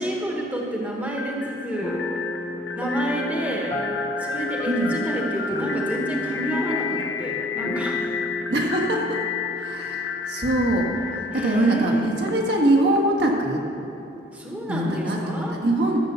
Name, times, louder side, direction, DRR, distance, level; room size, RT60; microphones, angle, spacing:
voice 1, 0.0-2.3 2.7-3.8 4.2-8.1 9.9-10.0 11.3-12.1 14.3-15.6, right 1 dB, 10° right, -1 dB, 1.1 m, -29 dB
sound 1, 1.1-13.0, left 6 dB, 80° left, 0.8 m, -32 dB
sound 2, 1.8-10.4, left 2 dB, 15° left, 0.6 m, -33 dB
voice 2, 8.5-9.2 9.6-13.6 14.7-16.0, right 1 dB, 65° right, -1 dB, 1.7 m, -23 dB
13.0 x 7.1 x 6.9 m, 2.9 s
head